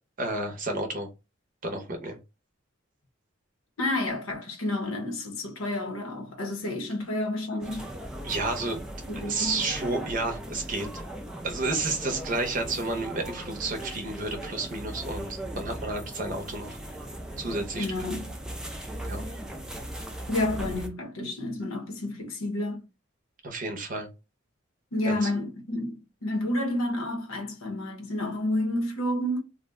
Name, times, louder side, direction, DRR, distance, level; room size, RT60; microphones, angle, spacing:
voice 1, 0.2-1.1 1.6-2.2 8.2-8.8 9.1-10.9 11.4-16.8 17.4-17.9 19.0-19.2 23.4-24.1 25.1-25.3, right 2 dB, 40° right, 0.6 m, -31 dB
voice 2, 3.8-7.9 9.1-9.7 17.8-18.3 20.3-22.8 24.9-29.4, left 1 dB, 85° left, 0.8 m, -30 dB
sound 1, 7.6-20.9, right 1 dB, 5° right, 0.3 m, -38 dB
2.5 x 2.1 x 3.5 m
head